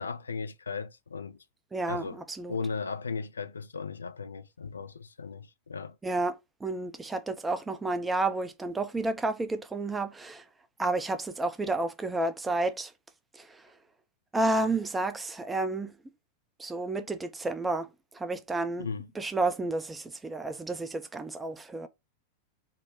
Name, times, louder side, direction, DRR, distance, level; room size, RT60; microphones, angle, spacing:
voice 1, 0.0-1.4 1.9-2.2 2.5-6.0 18.8-19.1, left 5 dB, 75° left, 0.3 m, -36 dB
voice 2, 1.7-2.1 2.4-2.6 6.0-10.4 10.8-12.9 13.3-13.5 14.3-15.9 16.6-17.9 18.1-18.9 19.2-21.9, right 2 dB, 10° right, 0.5 m, -31 dB
3.7 x 2.1 x 4.3 m
figure-of-eight pair, 90°, 0 cm